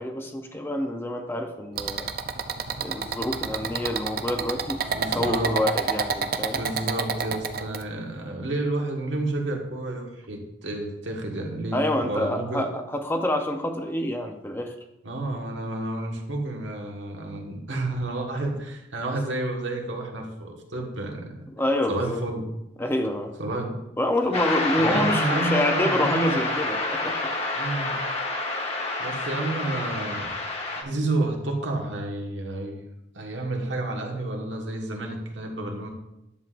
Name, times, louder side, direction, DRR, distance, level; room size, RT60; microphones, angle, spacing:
voice 1, 0.0-2.1 2.8-4.8 5.1-6.6 11.7-14.7 21.6-22.2 22.8-23.3 24.0-27.1, left 1 dB, 10° left, 4 dB, 0.6 m, -27 dB
sound 1, 1.8-7.8, right 5 dB, 50° right, 0.5 m, -29 dB
voice 2, 4.9-5.6 6.6-12.7 15.0-21.4 21.9-22.5 23.4-23.8 24.5-26.4 27.6-28.0 29.0-30.3 30.8-32.8 33.1-35.9, right 2 dB, 75° right, 1 dB, 1.5 m, -30 dB
sound 2, 24.3-30.8, left 2 dB, 30° left, 1.1 m, -28 dB
10.5 x 7.5 x 2.5 m, 0.89 s
head